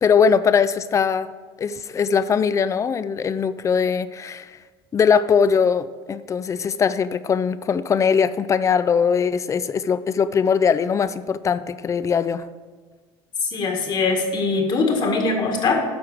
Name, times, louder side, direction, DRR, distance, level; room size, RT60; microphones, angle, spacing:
voice 1, 0.0-1.3 1.6-4.6 4.9-12.4, left 6 dB, 30° left, 15 dB, 0.4 m, -20 dB
voice 2, 13.4-15.8, left 3 dB, 45° left, 3 dB, 1.7 m, -22 dB
9.4 x 6.2 x 4.9 m, 1.4 s
supercardioid pair, 105°, 11 cm